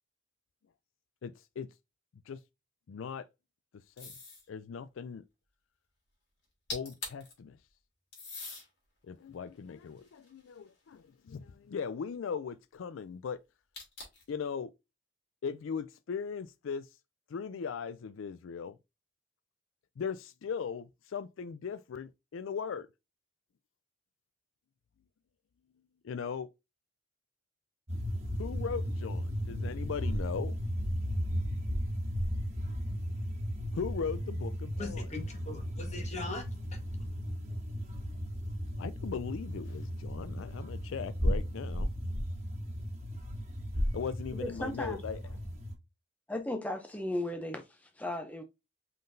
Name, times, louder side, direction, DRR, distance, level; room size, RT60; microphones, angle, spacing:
voice 1, 1.2-1.7 2.3-2.4 2.9-3.3 4.0-4.2 4.5-5.2 6.7-7.6 9.0-13.4 14.3-14.7 15.4-16.9 17.3-18.8 20.0-22.9 26.0-26.5 28.4-30.6 33.7-35.1 38.8-41.9 43.9-45.2, left 6 dB, 80° left, 0.4 m, -38 dB
sound 1, 4.0-4.5 6.4-6.5 6.7-7.3 8.1-8.7 9.3-10.8 13.7-14.3, left 3 dB, 55° left, 2.7 m, -43 dB
sound 2, 27.9-45.7, equal, 35° right, 1.4 m, -35 dB
voice 2, 34.8-37.3, left 2 dB, 35° left, 1.4 m, -42 dB
voice 3, 44.3-45.0 46.3-48.4, left 1 dB, 5° left, 0.5 m, -36 dB
5.4 x 3.8 x 2.6 m
head